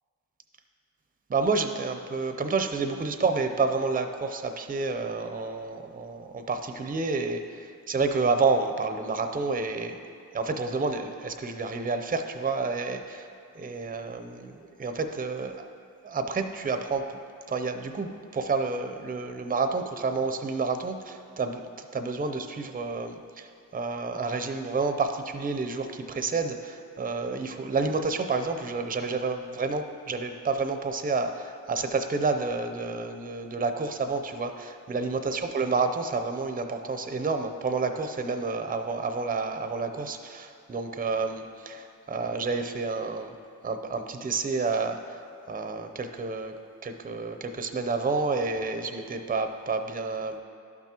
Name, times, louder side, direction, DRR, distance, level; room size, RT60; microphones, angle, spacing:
voice 1, 1.3-10.0 10.3-15.7 16.0-17.2 17.5-43.4 43.6-46.5 46.8-50.4, right 4 dB, 25° right, 7 dB, 0.6 m, -29 dB
11.5 x 5.9 x 2.9 m, 2.5 s
cardioid pair, 55°, 37 cm